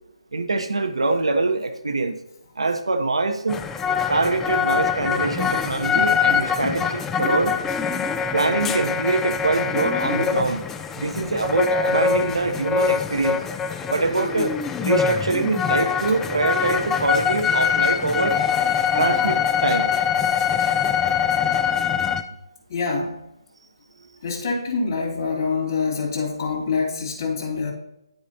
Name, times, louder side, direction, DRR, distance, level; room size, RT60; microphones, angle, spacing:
voice 1, 0.3-2.2 2.6-3.6 4.1-7.5 8.3-10.6 11.0-13.4 13.9-14.5 14.8-18.4 18.9-19.9, right 3 dB, 75° right, 7 dB, 1.1 m, -24 dB
sound 1, 3.5-22.2, left 7 dB, 10° left, 0.3 m, -23 dB
voice 2, 22.7-23.2 24.2-27.7, left 4 dB, 45° left, -3 dB, 2.6 m, -25 dB
12.0 x 5.0 x 2.8 m, 0.85 s
figure-of-eight pair, 150°, 3 cm